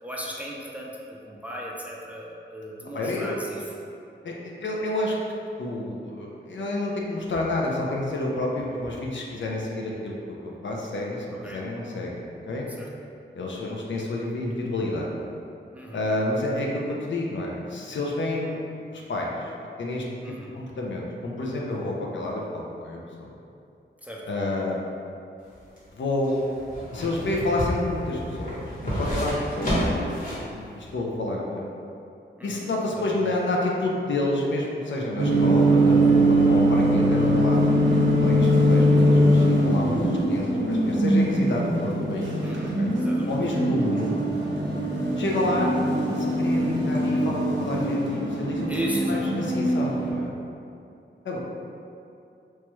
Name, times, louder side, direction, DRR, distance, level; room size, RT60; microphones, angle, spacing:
voice 1, 0.0-3.7 11.3-11.6 12.8-12.9 15.7-16.0 20.2-20.5 24.0-24.3 32.4-33.2 42.4-43.4 48.7-49.7, equal, 5° right, -3 dB, 0.4 m, -36 dB
voice 2, 2.9-3.3 4.2-5.2 5.6-12.7 13.3-15.1 15.9-18.6 18.9-19.5 19.8-20.0 20.5-23.3 24.3-24.8 25.9-26.4 26.9-29.9 30.2-31.7 32.4-42.3 42.8-42.9 43.3-44.2 45.2-45.8 46.1-48.7 49.1-50.4 51.2-51.4, left 2 dB, 70° left, -2 dB, 0.5 m, -29 dB
sound 1, 25.4-30.5 30.9-31.0, equal, 40° left, 1.1 m, -30 dB
sound 2, 35.2-50.1, right 1 dB, 65° right, 0.6 m, -22 dB
3.0 x 2.2 x 3.0 m, 2.6 s
wide cardioid pair, 70°, 20 cm